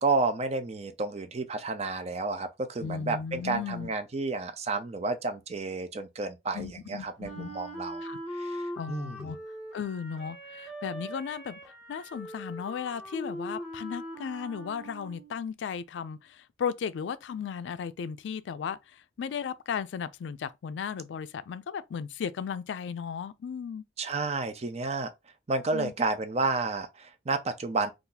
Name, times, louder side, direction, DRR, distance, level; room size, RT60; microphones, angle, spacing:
voice 1, 0.0-8.0 8.3-9.3 24.0-25.1 25.5-27.9, right 3 dB, 35° right, 0.5 m, -31 dB
voice 2, 2.8-3.9 6.5-7.5 8.0-8.2 8.8-9.4 9.7-11.6 11.9-23.8 25.7-25.9, left 7 dB, 80° left, 0.3 m, -35 dB
Wind instrument woodwind instrument, 7.2-15.4, equal, 5° right, 0.8 m, -41 dB
2.7 x 2.4 x 3.8 m
head